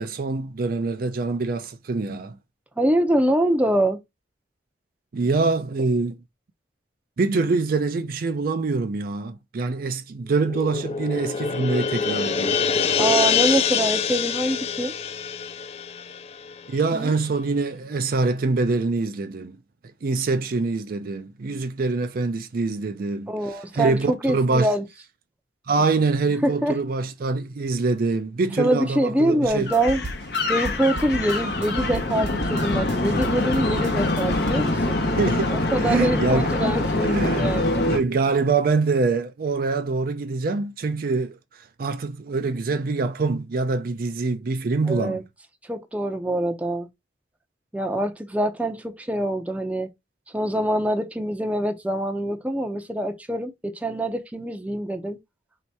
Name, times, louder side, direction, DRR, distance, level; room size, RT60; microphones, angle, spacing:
voice 1, 0.0-2.4 5.1-6.2 7.2-12.7 16.7-19.6 20.0-24.7 25.7-29.7 35.2-36.5 37.0-37.5 37.8-41.4 41.8-45.2, right 3 dB, 55° right, 0.4 m, -25 dB
voice 2, 2.8-4.0 13.0-14.9 16.9-17.1 23.3-24.9 26.4-26.8 28.6-30.0 30.5-35.0 35.5-37.9 44.9-45.2 45.7-46.9 47.7-49.9 50.3-55.2, right 1 dB, 10° right, 0.6 m, -24 dB
sound 1, 10.4-16.9, left 6 dB, 35° left, 0.4 m, -25 dB
sound 2, 29.5-34.5, right 2 dB, 80° right, 0.9 m, -35 dB
sound 3, 29.7-38.0, left 2 dB, 60° left, 0.8 m, -24 dB
3.2 x 2.8 x 4.5 m
head